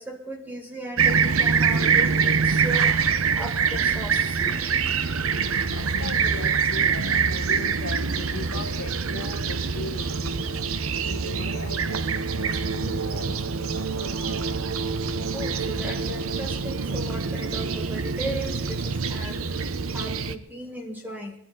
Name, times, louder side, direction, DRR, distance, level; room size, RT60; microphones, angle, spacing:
voice 1, 0.0-3.0 3.3-4.7 15.3-21.3, right 1 dB, 10° right, 2 dB, 1.9 m, -36 dB
Fixed-wing aircraft airplane, 1.0-20.3, right 5 dB, 75° right, 0.8 m, -25 dB
voice 2, 5.7-10.6 11.0-14.7, left 3 dB, 65° left, -3 dB, 1.6 m, -39 dB
22.0 x 12.0 x 3.8 m, 0.64 s
head